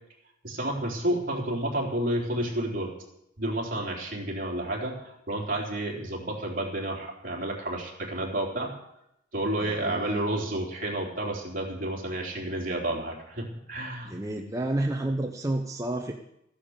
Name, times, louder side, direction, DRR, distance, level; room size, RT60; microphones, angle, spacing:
voice 1, 0.4-2.9 3.4-8.7 9.3-14.1, right 1 dB, 45° right, -1 dB, 3.7 m, -30 dB
voice 2, 9.6-10.2 14.0-16.1, right 1 dB, 15° right, 2 dB, 0.8 m, -30 dB
14.5 x 10.0 x 7.4 m, 0.81 s
head